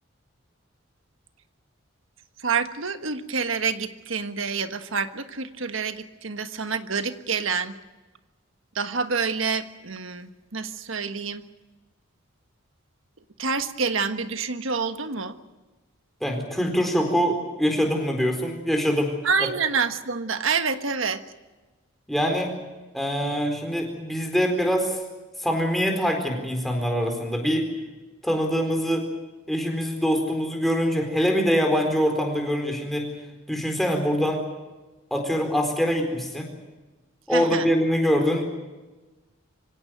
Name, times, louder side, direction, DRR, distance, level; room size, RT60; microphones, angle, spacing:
voice 1, 2.4-7.8 8.7-11.4 13.4-15.4 19.2-21.2 37.3-37.7, right 5 dB, 70° right, 9 dB, 1.4 m, -27 dB
voice 2, 16.2-19.1 22.1-22.5 22.9-25.0 25.4-27.7 28.2-29.1 29.5-33.1 33.5-34.4 35.1-36.5 37.3-38.4, equal, ahead, 3 dB, 4.2 m, -24 dB
25.5 x 17.0 x 9.2 m, 1.2 s
head